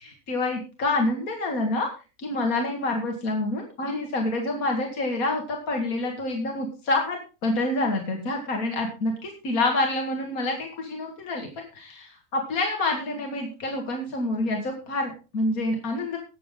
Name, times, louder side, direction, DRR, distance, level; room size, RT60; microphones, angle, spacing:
voice 1, 0.0-1.9 2.2-16.2, left 2 dB, 70° left, 2 dB, 2.4 m, -27 dB
19.0 x 7.2 x 3.7 m, 0.32 s
omnidirectional pair, 1.6 m